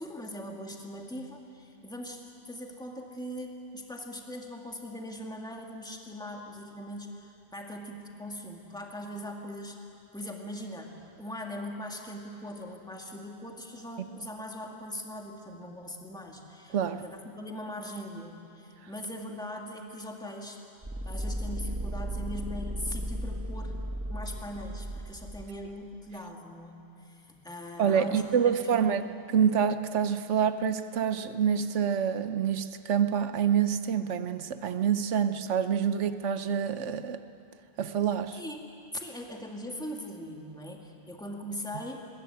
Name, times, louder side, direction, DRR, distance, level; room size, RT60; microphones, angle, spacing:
voice 1, 0.0-9.8 10.1-20.6 21.1-23.8 24.1-29.1 38.4-42.1, equal, 5° left, 1 dB, 2.1 m, -41 dB
voice 2, 16.7-17.0 27.8-37.2 37.8-38.4, right 8 dB, 80° right, 11 dB, 1.1 m, -27 dB
sound 1, 20.8-25.7, equal, 15° right, 1.2 m, -35 dB
21.0 x 20.5 x 8.8 m, 2.9 s
omnidirectional pair, 1.2 m